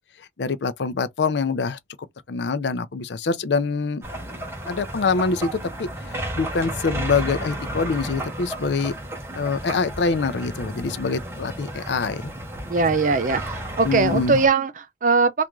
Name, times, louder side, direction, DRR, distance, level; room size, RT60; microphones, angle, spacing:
voice 1, 0.4-1.8 2.3-4.0 4.7-8.9 9.3-12.3 13.8-14.4, left 4 dB, 75° left, 0.5 m, -25 dB
sound 1, 4.0-14.5, right 1 dB, 15° right, 1.0 m, -33 dB
voice 2, 12.7-15.5, right 4 dB, 45° right, 0.6 m, -21 dB
3.4 x 2.5 x 3.0 m
head